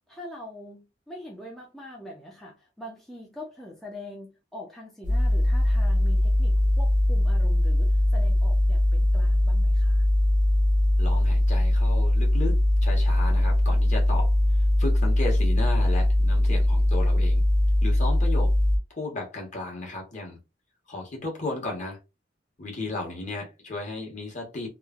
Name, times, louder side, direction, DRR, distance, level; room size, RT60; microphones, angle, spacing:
voice 1, 0.1-10.1, left 1 dB, ahead, 0.4 m, -43 dB
sound 1, 5.0-18.8, left 1 dB, 45° right, 0.6 m, -21 dB
voice 2, 11.0-12.6 12.8-17.4 17.8-18.5 18.9-20.4 20.9-22.0 22.6-24.7, left 2 dB, 40° left, 1.0 m, -34 dB
3.0 x 2.1 x 2.3 m
head